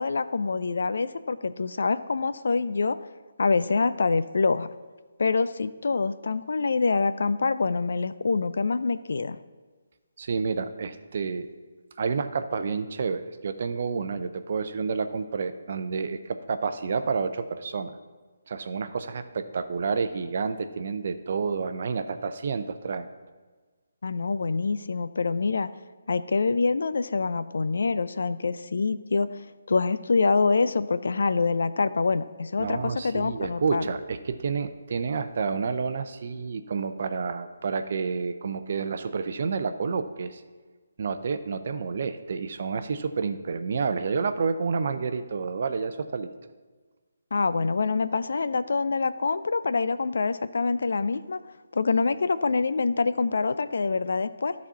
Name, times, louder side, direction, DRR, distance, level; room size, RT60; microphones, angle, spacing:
voice 1, 0.0-3.0 3.4-4.7 5.2-9.4 24.0-25.7 26.1-29.3 29.7-33.8 47.3-51.4 51.7-54.5, left 4 dB, 65° left, 14 dB, 0.4 m, -25 dB
voice 2, 10.2-11.5 12.0-18.0 18.5-23.1 32.6-40.4 41.0-46.3, right 5 dB, 50° right, 10 dB, 0.6 m, -29 dB
12.5 x 4.2 x 5.7 m, 1.4 s
figure-of-eight pair, 150°, 0 cm